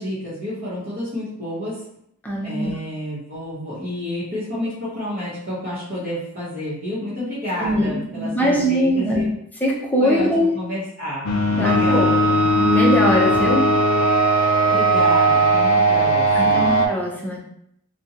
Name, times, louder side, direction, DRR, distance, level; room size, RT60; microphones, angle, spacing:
voice 1, 0.0-1.8 2.4-9.4 10.0-12.5 14.7-16.7, left 1 dB, 45° right, -10 dB, 0.9 m, -30 dB
voice 2, 2.2-2.7 7.6-9.2 9.6-10.5 11.6-12.2 12.6-13.7 16.3-17.4, equal, 10° left, -3 dB, 0.5 m, -21 dB
sound 1, 11.3-16.9, right 1 dB, 75° left, 0.4 m, -18 dB
Wind instrument woodwind instrument, 11.6-15.8, right 5 dB, 65° right, 0.3 m, -24 dB
2.5 x 2.2 x 2.7 m, 0.73 s
head